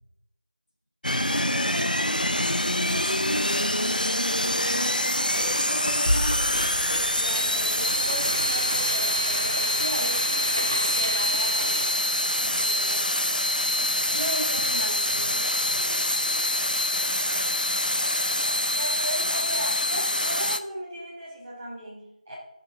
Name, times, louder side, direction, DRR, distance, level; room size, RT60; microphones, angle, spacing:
sound 1, 1.0-20.6, left 1 dB, 85° left, 0.8 m, -25 dB
voice 1, 1.3-4.8 5.1-10.2 10.8-16.7 17.8-17.9, equal, 25° left, -6 dB, 3.3 m, -37 dB
sound 2, 2.3-10.5, left 1 dB, 55° left, 1.6 m, -34 dB
Frying (food), 5.3-12.4, right 1 dB, 30° right, 0.7 m, -36 dB
voice 2, 18.7-22.3, right 1 dB, 10° right, -10 dB, 2.8 m, -35 dB
14.5 x 7.1 x 3.8 m, 0.84 s
figure-of-eight pair, 175°, 5 cm